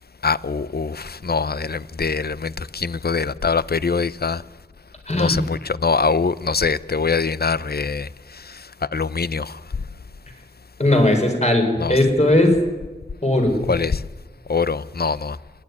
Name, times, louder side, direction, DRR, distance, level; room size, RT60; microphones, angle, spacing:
voice 1, 0.2-4.4 5.1-9.6 11.8-12.0 13.7-14.0 14.5-15.4, left 5 dB, 65° left, 0.6 m, -23 dB
voice 2, 5.1-5.4 10.8-12.6 13.2-13.6, left 1 dB, 40° left, 4.9 m, -17 dB
29.0 x 12.0 x 9.7 m
wide cardioid pair, 40°, 17 cm